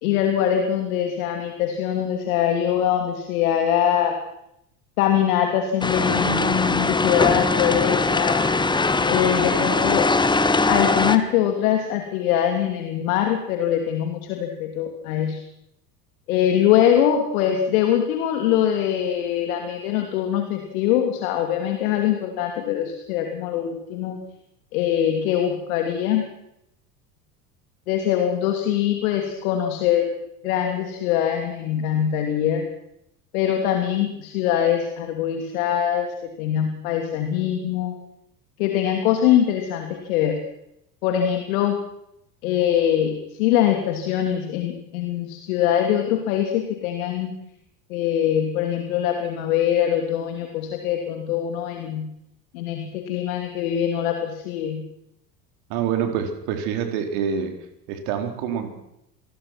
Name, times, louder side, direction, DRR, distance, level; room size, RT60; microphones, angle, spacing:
voice 1, 0.0-4.2 5.0-8.5 9.1-10.1 10.7-15.4 16.3-24.2 24.7-26.3 27.9-30.1 30.4-32.6 33.3-37.9 38.6-40.4 41.0-41.8 42.4-47.3 47.9-52.1 52.5-54.8, left 10 dB, 55° left, 4 dB, 3.0 m, -23 dB
sound 1, 5.8-11.2, left 3 dB, 10° left, 1.5 m, -21 dB
voice 2, 55.7-57.5 57.9-58.7, right 8 dB, 50° right, 6 dB, 4.1 m, -26 dB
27.0 x 21.0 x 6.1 m, 0.82 s
figure-of-eight pair, 75°, 49 cm